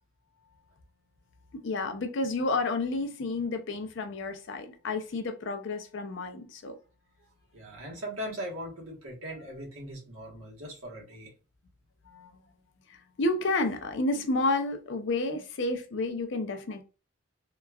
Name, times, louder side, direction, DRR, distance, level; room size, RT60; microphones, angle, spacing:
voice 1, 1.5-6.8 12.1-12.3 12.9-16.8, left 2 dB, 55° left, 0.5 m, -30 dB
voice 2, 7.2-11.3, equal, 85° right, 1.2 m, -40 dB
2.9 x 2.3 x 2.3 m
head